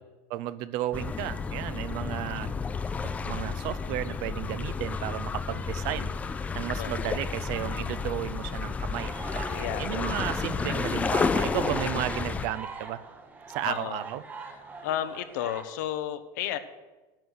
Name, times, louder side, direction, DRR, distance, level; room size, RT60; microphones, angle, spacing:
voice 1, 0.3-2.5 3.0-6.1 6.5-13.0 13.5-14.2, right 13 dB, 55° right, 15 dB, 0.5 m, -33 dB
sound 1, 0.9-12.5, left 5 dB, 15° left, 0.5 m, -31 dB
voice 2, 6.8-7.2 9.5-10.1 13.6-14.0 14.5-16.6, left 11 dB, 80° left, 11 dB, 0.9 m, -33 dB
sound 2, 9.0-15.6, right 4 dB, 20° right, 0.8 m, -42 dB
10.5 x 6.3 x 8.2 m, 1.2 s
supercardioid pair, 155°, 10 cm